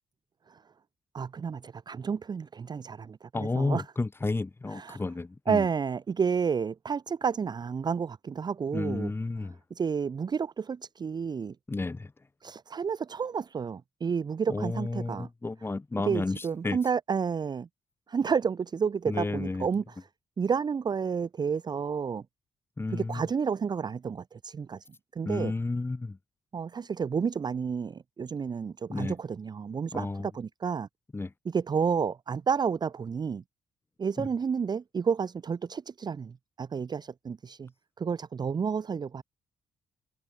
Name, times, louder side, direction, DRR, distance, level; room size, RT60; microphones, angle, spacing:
voice 1, 1.1-3.8 4.7-5.0 5.5-9.1 9.7-11.6 12.4-15.3 16.0-17.7 18.1-19.9 20.4-22.2 22.9-24.9 25.1-25.5 26.5-30.9 31.5-33.4 34.0-37.7 38.0-39.2, right 6 dB, 35° right, 0.6 m, -30 dB
voice 2, 3.3-5.7 8.7-9.6 11.7-12.1 14.5-16.8 19.1-19.7 22.8-23.2 25.2-26.2 28.9-29.2 29.9-30.3 31.1-31.3 34.2-34.3, left 3 dB, 20° left, 0.8 m, -32 dB
hypercardioid pair, 40°, 12 cm